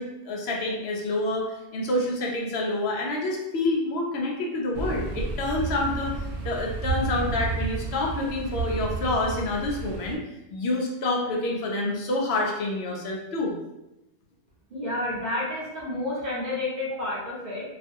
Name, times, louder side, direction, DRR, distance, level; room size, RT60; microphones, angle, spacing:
voice 1, 0.0-6.1 6.4-10.2 10.5-13.5, left 2 dB, 75° left, -1 dB, 0.8 m, -28 dB
sound 1, 4.7-10.2, right 4 dB, 90° right, 0.9 m, -31 dB
voice 2, 14.7-17.6, left 2 dB, 45° right, -6 dB, 0.8 m, -30 dB
2.5 x 2.4 x 2.5 m, 0.93 s
omnidirectional pair, 1.1 m